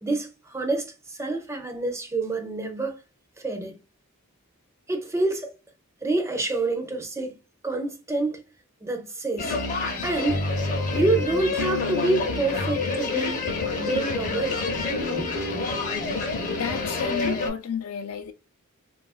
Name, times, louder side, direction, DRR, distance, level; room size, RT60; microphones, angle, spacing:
voice 1, 0.0-2.9 3.4-3.8 4.9-5.6 6.0-7.3 7.6-8.4 8.8-9.6 10.0-10.4 10.9-13.4 13.8-14.7 15.2-15.4, right 2 dB, 15° right, 0.5 m, -27 dB
sound 1, 9.4-17.5, left 3 dB, 40° left, 0.7 m, -27 dB
voice 2, 16.3-18.3, left 7 dB, 80° left, 0.5 m, -32 dB
3.0 x 2.4 x 2.3 m
head